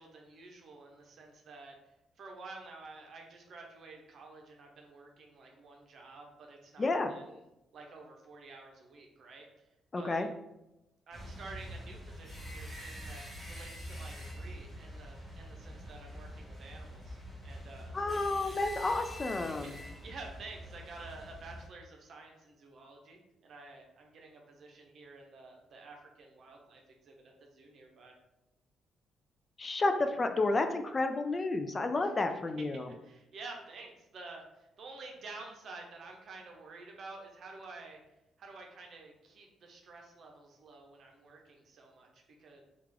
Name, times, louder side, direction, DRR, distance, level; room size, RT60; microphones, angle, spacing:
voice 1, 0.0-1.8 2.2-7.2 7.7-9.7 10.0-10.3 11.1-17.2 17.4-17.9 19.0-19.2 19.6-28.1 32.0-32.1 33.0-38.0 38.4-42.6, right 3 dB, 60° right, 1 dB, 0.7 m, -50 dB
voice 2, 6.8-7.1 9.9-10.3 17.9-19.8 29.6-32.9, left 2 dB, 30° left, 7 dB, 0.3 m, -31 dB
sound 1, 11.1-21.7, equal, 5° right, 1.5 m, -45 dB
3.4 x 2.4 x 3.3 m, 0.91 s
cardioid pair, 90°, 0 cm